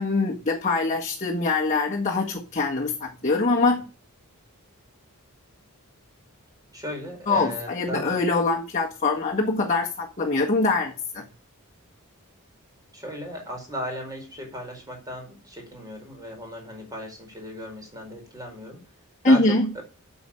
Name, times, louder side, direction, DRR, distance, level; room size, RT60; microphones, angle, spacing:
voice 1, 0.0-3.8 7.3-11.2 19.2-19.7, left 3 dB, 35° left, -2 dB, 1.7 m, -23 dB
voice 2, 6.7-8.2 12.9-18.8 19.3-19.8, equal, 15° right, 1 dB, 4.7 m, -36 dB
8.6 x 7.2 x 8.7 m, 0.36 s
head